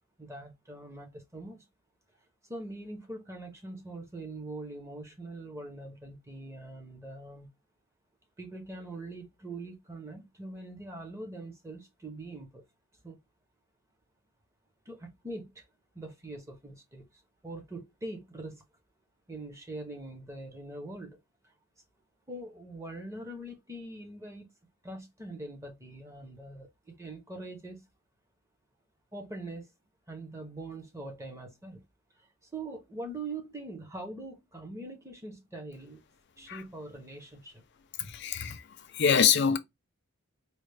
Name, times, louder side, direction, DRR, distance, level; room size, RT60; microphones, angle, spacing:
voice 1, 0.2-1.6 2.5-7.5 8.4-12.6 13.0-13.2 14.9-15.7 15.9-18.6 19.3-21.2 21.4-21.5 22.3-24.5 24.8-27.9 29.1-29.7 30.1-31.8 32.1-36.0 36.4-37.6, right 2 dB, 15° right, 0.6 m, -43 dB
voice 2, 38.0-39.6, left 7 dB, 50° left, 0.4 m, -25 dB
4.2 x 2.0 x 3.3 m
head